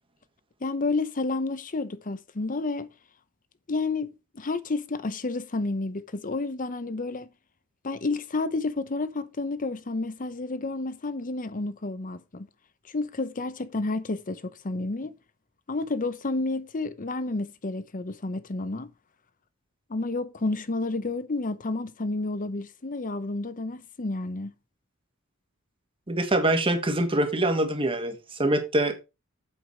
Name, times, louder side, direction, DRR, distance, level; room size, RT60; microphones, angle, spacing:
voice 1, 0.6-2.9 3.7-7.3 7.8-12.5 12.9-15.1 15.7-18.9 19.9-24.5, left 3 dB, 40° left, 0.8 m, -30 dB
voice 2, 26.1-29.0, right 1 dB, 25° right, 1.7 m, -24 dB
8.2 x 6.0 x 4.7 m
head